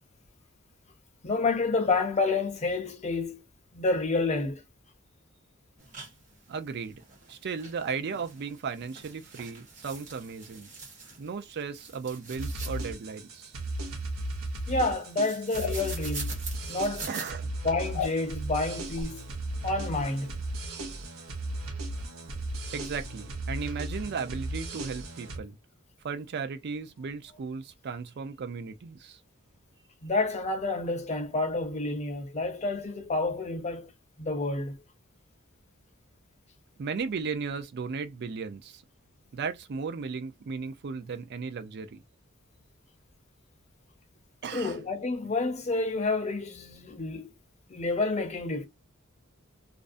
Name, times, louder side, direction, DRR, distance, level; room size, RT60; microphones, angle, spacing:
voice 1, 1.2-3.4 3.7-4.6 14.7-16.3 16.7-17.1 17.6-19.2 19.6-20.3 30.0-33.9 34.2-34.8 44.5-47.3 47.7-48.7, left 3 dB, 35° left, 0.6 m, -29 dB
sound 1, 5.8-17.3, right 4 dB, 35° right, 1.0 m, -45 dB
voice 2, 6.5-7.0 7.3-10.7 11.2-13.5 17.1-17.5 22.7-25.6 26.0-29.2 36.8-38.8 39.3-42.0 44.4-44.8, right 5 dB, 50° right, 0.4 m, -36 dB
sound 2, 12.4-25.4, right 2 dB, 85° right, 0.7 m, -36 dB
sound 3, 15.6-15.8 17.9-18.2 19.0-19.1, left 7 dB, 75° left, 0.4 m, -32 dB
2.4 x 2.0 x 2.5 m
head